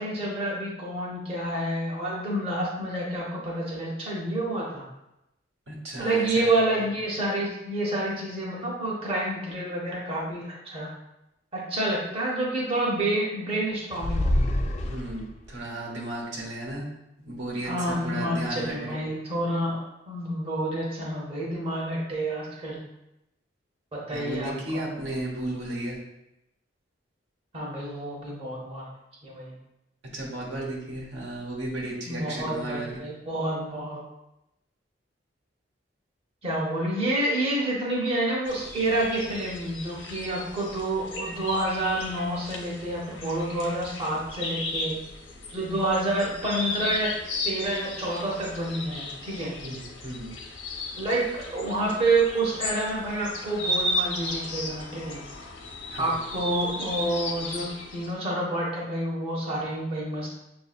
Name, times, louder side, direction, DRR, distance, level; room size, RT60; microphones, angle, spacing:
voice 1, 0.0-4.9 6.0-10.9 11.5-14.4 17.6-22.8 23.9-24.8 27.5-28.9 29.2-29.5 32.1-34.0 36.4-45.0 45.5-47.1 47.4-49.5 51.0-55.2 56.0-60.4, right 1 dB, 30° right, -5 dB, 0.8 m, -28 dB
voice 2, 5.7-6.6 14.8-16.9 17.2-19.0 24.1-26.0 30.1-33.0 49.6-50.3 55.9-56.3, right 1 dB, 80° right, -2 dB, 1.1 m, -34 dB
sound 1, 13.9-15.6, left 1 dB, 35° left, 0.3 m, -26 dB
sound 2, 38.4-58.1, left 1 dB, 85° left, 0.7 m, -35 dB
6.4 x 2.6 x 2.4 m, 0.88 s
head